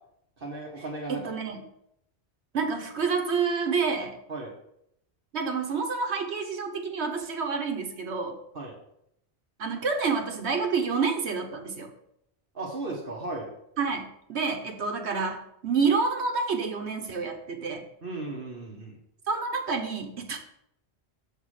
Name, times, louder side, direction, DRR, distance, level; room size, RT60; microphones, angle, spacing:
voice 1, 0.4-1.2 4.3-4.5 8.5-8.7 12.5-13.5 18.0-19.0, right 2 dB, 55° right, -1 dB, 1.3 m, -35 dB
voice 2, 1.1-1.6 2.5-4.2 5.3-8.4 9.6-11.9 13.8-17.8 19.3-20.4, right 5 dB, 75° right, 4 dB, 1.2 m, -28 dB
7.3 x 3.6 x 6.3 m, 0.75 s
omnidirectional pair, 1.1 m